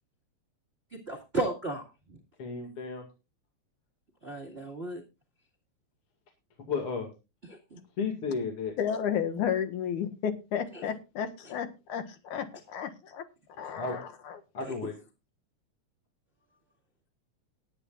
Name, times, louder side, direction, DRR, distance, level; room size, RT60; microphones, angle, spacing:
voice 1, 1.1-2.2 4.2-5.0 7.5-7.8 10.7-10.8 14.6-14.8, right 2 dB, 25° right, 0 dB, 1.9 m, -34 dB
voice 2, 2.4-3.0 6.7-7.1 8.0-8.8 13.8-14.0 14.5-15.0, left 5 dB, 50° left, 3 dB, 2.9 m, -33 dB
voice 3, 8.8-14.4, left 8 dB, 85° left, 8 dB, 3.0 m, -33 dB
19.0 x 9.9 x 2.5 m, 0.28 s
omnidirectional pair, 3.4 m